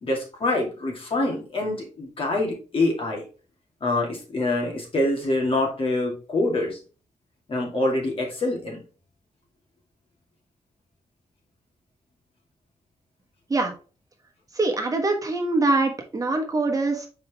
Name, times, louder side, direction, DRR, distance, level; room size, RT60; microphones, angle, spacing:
voice 1, 0.0-3.2 3.8-6.8 7.5-8.8, left 2 dB, 50° left, -1 dB, 2.5 m, -25 dB
voice 2, 14.5-17.1, right 2 dB, 30° right, 2 dB, 1.3 m, -23 dB
5.7 x 4.7 x 3.6 m, 0.36 s
cardioid pair, 100°, 12 cm